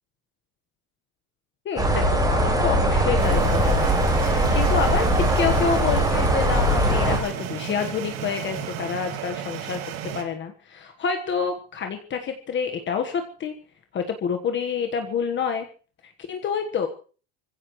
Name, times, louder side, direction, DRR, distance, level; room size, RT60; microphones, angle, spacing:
voice 1, 1.6-13.5 13.9-15.7 16.3-16.9, left 6 dB, 30° left, 5 dB, 1.4 m, -28 dB
sound 1, 1.8-7.2, equal, 10° right, 4.5 m, -21 dB
sound 2, 3.2-10.2, right 9 dB, 75° right, 3.1 m, -33 dB
25.5 x 15.5 x 3.1 m, 0.39 s
cardioid pair, 165°, 38 cm